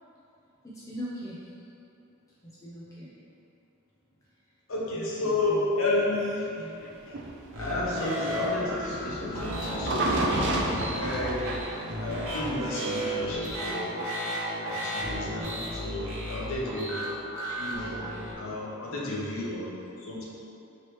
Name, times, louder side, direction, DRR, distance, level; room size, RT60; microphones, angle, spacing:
voice 1, 0.7-1.5 2.4-3.1 4.9-5.7 6.6-6.8, equal, 15° left, -9 dB, 0.5 m, -41 dB
voice 2, 4.7-7.2 7.6-10.2 10.9-11.6 12.0-13.9 14.6-17.0 17.5-18.1 18.4-20.2, left 2 dB, 80° left, -4 dB, 0.8 m, -32 dB
sound 1, 7.1-13.0, right 1 dB, 55° right, 0.4 m, -31 dB
sound 2, 7.5-18.3, equal, 80° right, 0.9 m, -34 dB
4.7 x 3.1 x 3.0 m, 2.8 s
head